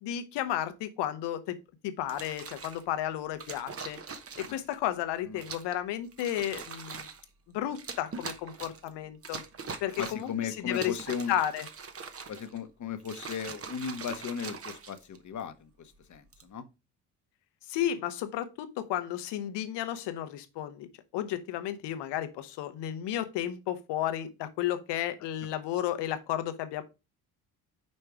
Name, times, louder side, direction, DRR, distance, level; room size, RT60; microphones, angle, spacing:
voice 1, 0.0-1.6 1.8-4.0 4.4-7.1 7.5-9.4 9.8-11.0 11.3-11.7 17.7-20.9 21.1-26.8, left 12 dB, 65° left, 1.0 m, -33 dB
sound 1, 2.0-2.8 3.4-4.7 5.4-5.8 6.1-7.2 7.7-8.9 9.2-10.3 10.7-12.6 13.0-15.4 16.1-16.5, right 5 dB, 30° right, 1.0 m, -42 dB
voice 2, 10.0-11.3 12.3-16.6, left 7 dB, 40° left, 1.1 m, -37 dB
5.4 x 4.4 x 4.8 m
hypercardioid pair, 50°, 45 cm